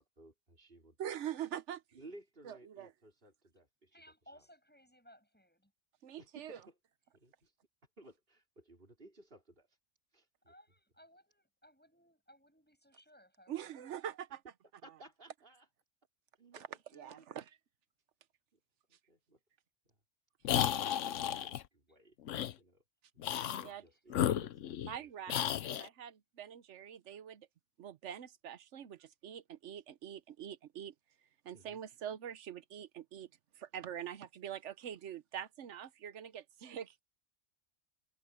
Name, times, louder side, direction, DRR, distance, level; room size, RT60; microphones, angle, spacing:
voice 1, 0.0-1.0 1.9-4.0 4.3-4.4 6.2-6.8 7.1-7.5 8.0-9.8 10.1-10.5 14.8-15.7 16.4-17.3 18.5-18.6 18.9-19.4 19.8-20.0 20.5-22.2 22.6-22.8 23.4-25.6 31.5-31.8, right 2 dB, 50° right, 4.7 m, -58 dB
voice 2, 1.0-1.8 2.4-2.9 6.0-6.6 13.5-14.4 16.5-17.6 23.6-23.8 24.8-27.5 27.8-30.9 31.4-33.3 33.5-37.0, right 10 dB, 75° right, 1.1 m, -44 dB
voice 3, 3.9-5.7 10.4-13.9, equal, 10° left, 8.0 m, -62 dB
sound 1, 20.4-21.6 22.3-22.5 23.2-23.7 24.1-25.0 25.3-25.9, left 10 dB, 90° left, 1.1 m, -33 dB
omnidirectional pair, 1.2 m